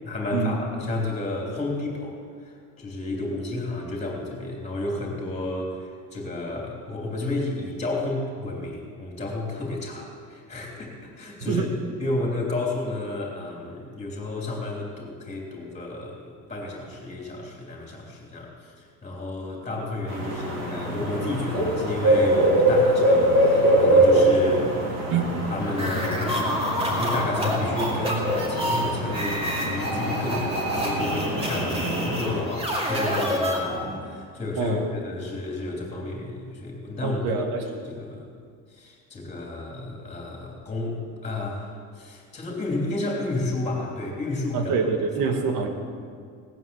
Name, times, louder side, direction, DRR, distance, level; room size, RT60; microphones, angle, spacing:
voice 1, 0.0-11.7 12.0-24.7 25.5-38.3 38.7-44.7 45.2-45.3, left 2 dB, 20° left, -1 dB, 3.2 m, -31 dB
sound 1, 20.1-32.4, right 1 dB, 50° right, 3.8 m, -23 dB
sound 2, 25.7-34.0, equal, 15° right, 2.4 m, -28 dB
voice 2, 37.0-37.6 44.5-45.7, right 5 dB, 90° right, 4 dB, 2.1 m, -25 dB
17.5 x 9.5 x 7.1 m, 2.2 s
cardioid pair, 175°, 35 cm